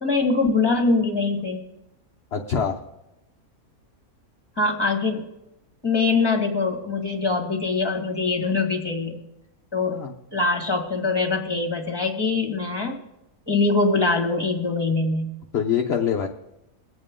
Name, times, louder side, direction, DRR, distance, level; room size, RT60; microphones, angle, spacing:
voice 1, 0.0-1.6 4.6-5.2 5.8-9.2 9.7-10.0 10.3-13.0 13.5-15.3, left 3 dB, 15° left, 3 dB, 1.9 m, -23 dB
voice 2, 2.3-2.8 9.9-10.1 15.5-16.3, left 7 dB, 50° left, 2 dB, 1.0 m, -24 dB
22.5 x 8.8 x 3.7 m, 0.91 s
omnidirectional pair, 1.5 m